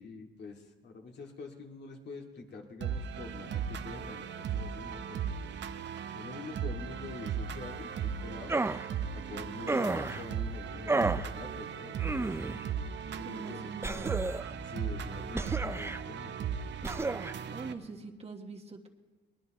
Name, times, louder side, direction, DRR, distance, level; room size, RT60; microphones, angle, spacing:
voice 1, 0.0-5.5 6.1-8.5 9.1-12.2 12.8-12.9 13.2-14.1 14.7-16.3, left 4 dB, 60° left, 1 dB, 2.3 m, -46 dB
sound 1, 2.8-17.7, right 7 dB, 65° right, 1.0 m, -37 dB
sound 2, 8.5-8.9 9.7-10.2 10.9-11.3 12.0-12.6 13.8-14.5 15.3-16.0 16.8-17.3, right 3 dB, 15° right, 0.5 m, -31 dB
voice 2, 13.2-14.4 17.5-18.9, right 4 dB, 30° right, 1 dB, 1.5 m, -44 dB
21.5 x 20.0 x 3.1 m, 1.3 s
cardioid pair, 90°, 20 cm